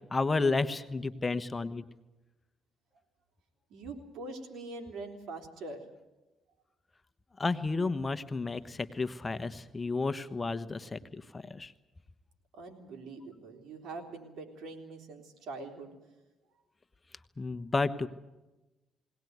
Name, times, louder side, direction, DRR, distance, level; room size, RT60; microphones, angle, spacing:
voice 1, 0.1-1.8 7.4-11.7 17.4-18.1, left 3 dB, 25° left, 11 dB, 1.1 m, -32 dB
voice 2, 3.7-5.9 12.5-15.9, right 3 dB, 75° right, 4 dB, 3.7 m, -43 dB
21.0 x 18.5 x 9.4 m, 1.1 s
cardioid pair, 90°, 0 cm